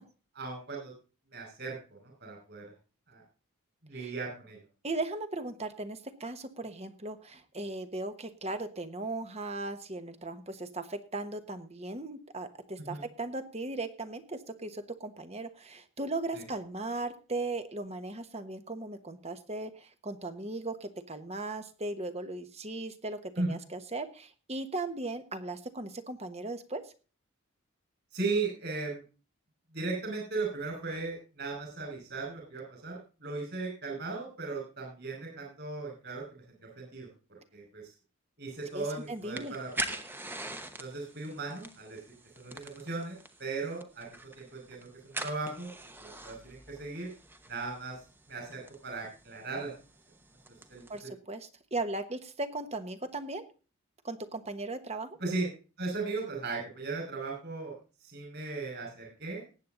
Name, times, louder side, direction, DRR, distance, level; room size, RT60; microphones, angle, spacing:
voice 1, 0.3-0.9 1.3-2.7 3.1-3.2 3.8-4.6 12.8-13.0 16.3-16.4 23.4-23.6 28.1-29.0 29.7-37.8 38.4-39.9 40.8-42.0 42.4-45.7 46.0-47.1 47.5-48.0 48.3-49.7 50.7-51.1 55.2-55.5 55.8-57.8 58.0-59.4, right 3 dB, 45° right, 1 dB, 5.5 m, -37 dB
voice 2, 4.8-26.9 38.7-39.5 50.9-53.4 54.0-55.2, right 2 dB, 30° right, 10 dB, 1.2 m, -37 dB
sound 1, 38.5-51.0, right 2 dB, 10° right, 0.9 m, -44 dB
19.0 x 8.5 x 3.9 m, 0.35 s
head